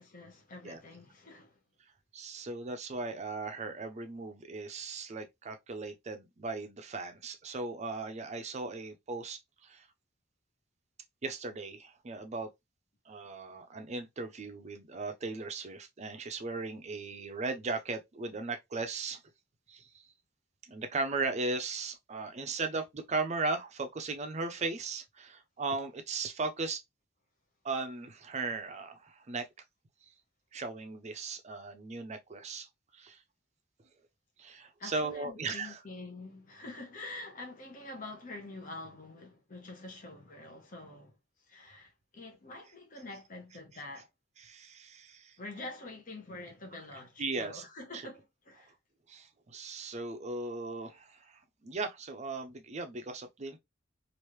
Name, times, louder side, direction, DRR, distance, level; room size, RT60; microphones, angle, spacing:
voice 1, 0.0-1.6 34.8-44.1 45.4-48.7, left 2 dB, 45° left, 0.9 m, -46 dB
voice 2, 2.1-9.9 11.2-12.5 13.1-19.2 19.7-20.0 20.7-26.8 27.6-29.5 30.5-32.7 32.9-33.2 34.4-35.8 44.4-45.4 47.2-47.6 47.9-48.0 49.1-53.6, right 3 dB, 35° right, 0.5 m, -37 dB
3.1 x 2.6 x 3.0 m
head